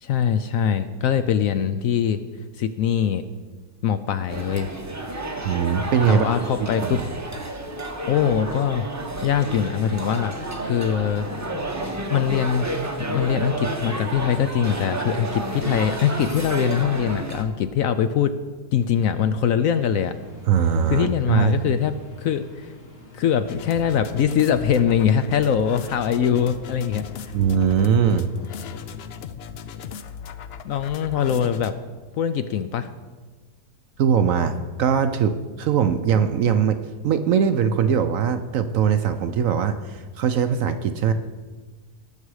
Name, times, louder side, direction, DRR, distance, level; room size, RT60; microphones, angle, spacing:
voice 1, 0.0-2.2 2.6-3.2 3.8-4.7 6.1-7.0 8.1-8.9 9.2-11.3 12.1-12.7 13.0-18.3 18.7-20.1 20.9-22.7 23.1-27.3 30.6-31.7 32.2-32.9, left 8 dB, 70° left, 10 dB, 0.8 m, -22 dB
sound 1, 4.3-17.4, right 2 dB, 15° right, 0.6 m, -30 dB
voice 2, 5.4-6.3 6.6-7.1 20.5-21.8 27.3-28.3 34.0-36.8 37.0-41.1, right 7 dB, 65° right, 9 dB, 0.9 m, -21 dB
sound 2, 19.7-29.0, left 1 dB, 40° left, 1.8 m, -48 dB
sound 3, 23.5-31.7, left 7 dB, 90° left, 0.5 m, -38 dB
17.5 x 6.6 x 4.8 m, 1.4 s
omnidirectional pair, 1.7 m